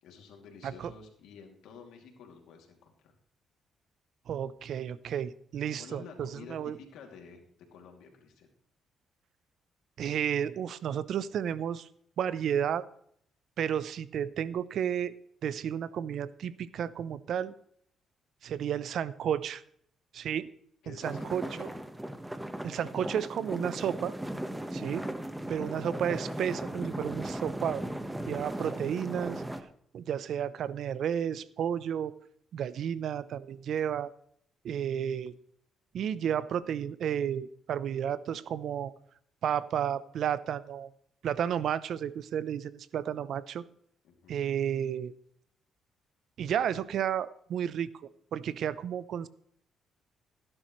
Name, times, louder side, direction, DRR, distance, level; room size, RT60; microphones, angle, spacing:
voice 1, 0.0-3.1 5.8-7.4 7.7-8.5 20.8-21.8 44.0-44.4, left 6 dB, 85° left, 2 dB, 2.7 m, -50 dB
voice 2, 4.3-6.7 10.0-11.9 12.2-12.8 13.6-15.1 15.4-17.5 18.4-19.6 20.1-20.5 20.9-21.7 22.6-24.1 24.7-25.0 25.5-27.8 28.3-29.4 29.9-32.1 32.5-34.1 34.6-35.3 35.9-38.9 39.4-40.9 41.2-43.6 44.3-45.1 46.4-47.9 48.3-49.3, right 9 dB, 70° right, 17 dB, 0.7 m, -32 dB
sound 1, 21.0-29.6, right 1 dB, 10° right, 1.2 m, -37 dB
16.5 x 11.0 x 3.2 m, 0.66 s
cardioid pair, 90°, 0 cm